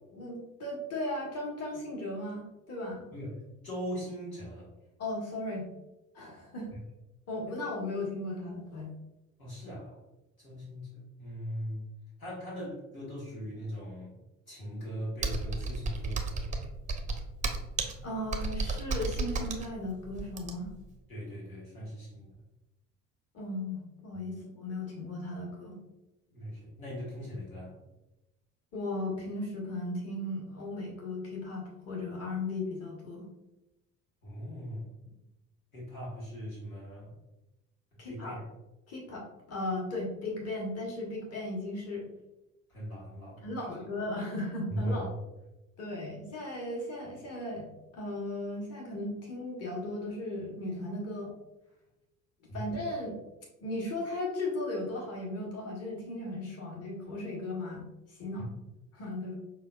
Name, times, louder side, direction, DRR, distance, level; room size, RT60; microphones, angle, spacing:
voice 1, 0.1-3.0 5.0-5.7 6.1-6.7 7.3-8.9 18.0-20.7 23.3-25.8 28.7-33.3 38.0-38.4 38.9-42.1 43.4-45.1 45.8-51.3 52.5-53.2 53.6-58.5 58.9-59.3, left 2 dB, 35° left, -2 dB, 1.2 m, -36 dB
voice 2, 3.6-4.7 9.4-10.0 10.4-11.8 12.2-14.2 14.5-16.5 21.1-22.3 26.3-27.8 34.2-34.9 35.7-37.1 38.1-38.4 42.7-43.4 44.7-45.1 52.5-52.6 58.4-58.5, equal, 80° left, -6 dB, 1.3 m, -39 dB
Computer keyboard, 15.2-20.8, right 3 dB, 20° right, 0.5 m, -33 dB
5.5 x 2.3 x 2.3 m, 0.97 s
figure-of-eight pair, 55°, 41 cm